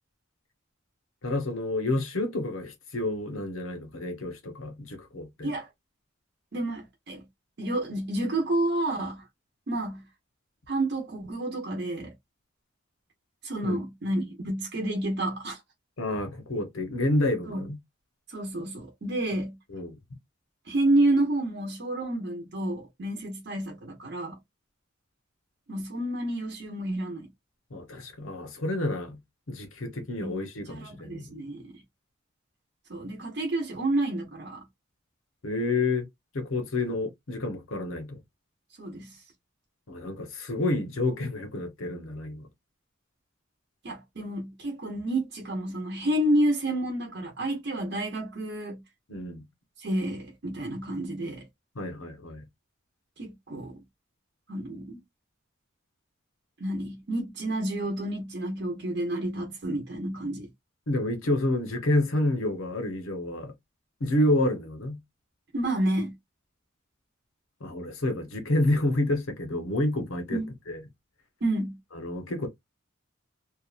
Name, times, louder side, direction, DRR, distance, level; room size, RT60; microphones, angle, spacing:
voice 1, 1.2-5.5 13.6-13.8 16.0-17.8 19.7-20.0 27.7-29.2 29.5-31.2 35.4-36.1 36.3-38.2 39.9-42.5 49.1-49.4 51.8-52.4 60.9-63.5 64.0-65.0 67.6-70.4 70.7-70.8 71.9-72.5, left 2 dB, 85° left, 0.8 m, -29 dB
voice 2, 6.5-7.2 7.6-9.2 9.7-10.0 10.7-12.1 13.4-15.6 17.5-17.6 18.3-19.6 20.7-24.4 25.7-27.3 30.2-30.4 30.7-31.7 32.9-34.6 38.8-39.2 43.8-48.8 49.8-51.5 53.2-53.8 54.5-55.0 56.6-60.5 65.5-66.1 70.3-70.5 71.4-71.8, right 1 dB, 55° right, 0.8 m, -29 dB
2.8 x 2.2 x 2.4 m
head